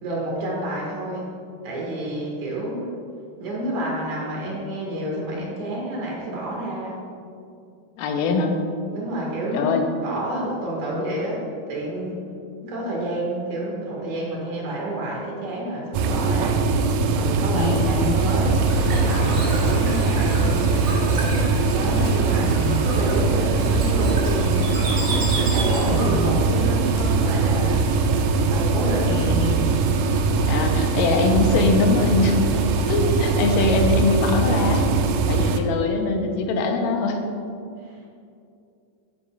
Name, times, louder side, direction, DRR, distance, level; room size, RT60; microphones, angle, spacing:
voice 1, 0.0-1.3 1.6-2.9 3.4-7.0 8.9-12.2 12.6-16.7 17.0-21.4 21.7-24.6 25.1-27.9 28.5-29.2 35.4-35.6 37.8-38.1, right 1 dB, 65° right, -3 dB, 3.2 m, -29 dB
voice 2, 8.0-8.6 9.5-9.9 17.5-18.1 22.4-22.9 25.9-26.4 29.1-29.7 30.5-32.4 32.9-34.9 35.3-37.2, left 3 dB, 90° left, 3 dB, 2.4 m, -23 dB
sound 1, 15.9-35.6, right 4 dB, 85° right, 2.1 m, -21 dB
Bird / Water, 17.9-26.3, right 2 dB, 45° right, 2.4 m, -33 dB
sound 2, 18.0-34.9, equal, 65° left, 3.8 m, -32 dB
11.5 x 9.9 x 2.4 m, 2.5 s
omnidirectional pair, 3.9 m